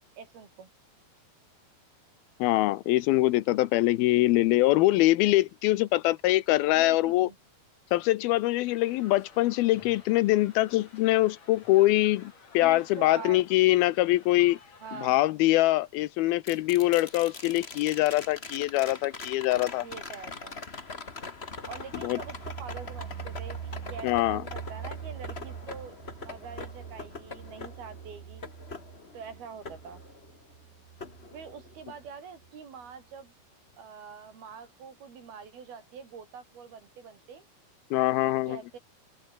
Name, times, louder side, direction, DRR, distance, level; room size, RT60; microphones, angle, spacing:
voice 1, 0.2-0.7 6.7-7.4 12.6-13.4 14.8-15.3 19.8-20.6 21.7-28.4 29.1-30.0 31.3-33.3 33.8-37.5 38.1-38.8, right 6 dB, 75° right, 6.2 m, -44 dB
voice 2, 2.4-7.3 7.9-14.6 15.0-19.9 22.0-22.2 24.0-24.4 37.9-38.6, left 17 dB, 80° left, 2.6 m, -24 dB
sound 1, 8.7-15.1, left 5 dB, 45° left, 4.8 m, -54 dB
sound 2, 16.5-30.6 31.0-32.0 34.3-34.4, left 4 dB, 25° left, 1.3 m, -43 dB
sound 3, 21.4-32.1 32.4-32.5 32.8-32.9, right 9 dB, 55° right, 3.2 m, -44 dB
open air
omnidirectional pair, 4.4 m